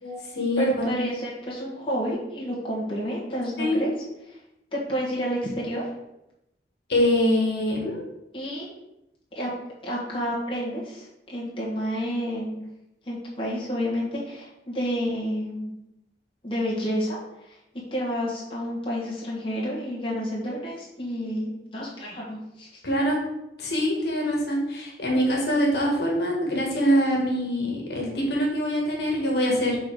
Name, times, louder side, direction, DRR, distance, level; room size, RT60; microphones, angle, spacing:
voice 1, 0.0-1.0 3.6-3.8 6.9-8.0 22.8-23.2 23.6-29.8, equal, 70° left, -1 dB, 1.6 m, -24 dB
voice 2, 0.6-3.9 4.3-4.4 4.7-5.9 8.3-8.7 9.3-9.5 9.8-12.6 13.0-15.7 16.4-17.2 17.4-17.6 17.9-22.8, equal, 30° left, -5 dB, 1.5 m, -30 dB
6.2 x 3.8 x 4.8 m, 0.88 s
head